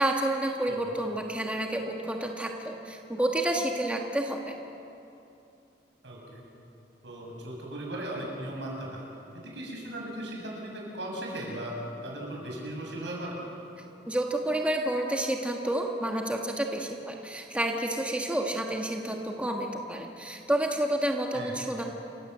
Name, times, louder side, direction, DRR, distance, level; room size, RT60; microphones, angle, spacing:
voice 1, 0.0-4.5 14.1-21.8, right 1 dB, 5° right, 1 dB, 1.4 m, -29 dB
voice 2, 6.0-6.4 7.0-9.0 9.3-11.7 12.0-13.4 21.3-21.6, right 1 dB, 75° right, -1 dB, 6.8 m, -37 dB
28.5 x 15.5 x 7.9 m, 2.7 s
head